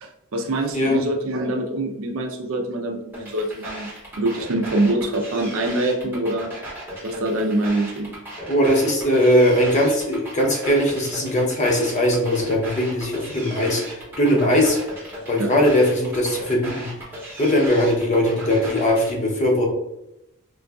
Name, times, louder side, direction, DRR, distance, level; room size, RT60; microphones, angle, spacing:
voice 1, 0.0-6.5 7.0-8.1 15.4-15.5, right 1 dB, 65° right, 3 dB, 0.5 m, -24 dB
sound 1, 3.1-19.1, right 1 dB, 10° right, 0.7 m, -36 dB
voice 2, 8.5-14.8 15.3-16.9 17.4-19.7, equal, 30° left, 0 dB, 0.6 m, -20 dB
3.8 x 2.5 x 2.3 m, 0.86 s
head